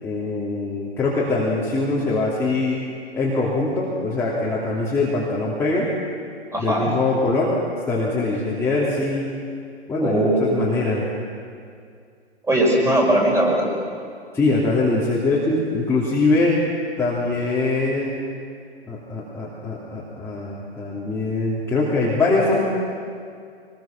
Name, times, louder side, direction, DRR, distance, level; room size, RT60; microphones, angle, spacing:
voice 1, 0.0-2.8 3.1-5.9 6.6-7.5 7.9-9.3 9.9-11.1 14.3-16.6 17.0-18.2 18.8-22.7, left 3 dB, 10° left, -8 dB, 3.0 m, -22 dB
voice 2, 6.5-6.9 10.0-10.7 12.5-13.6, right 1 dB, 10° right, -2 dB, 4.9 m, -19 dB
23.5 x 21.0 x 6.0 m, 2.3 s
hypercardioid pair, 135°, 33 cm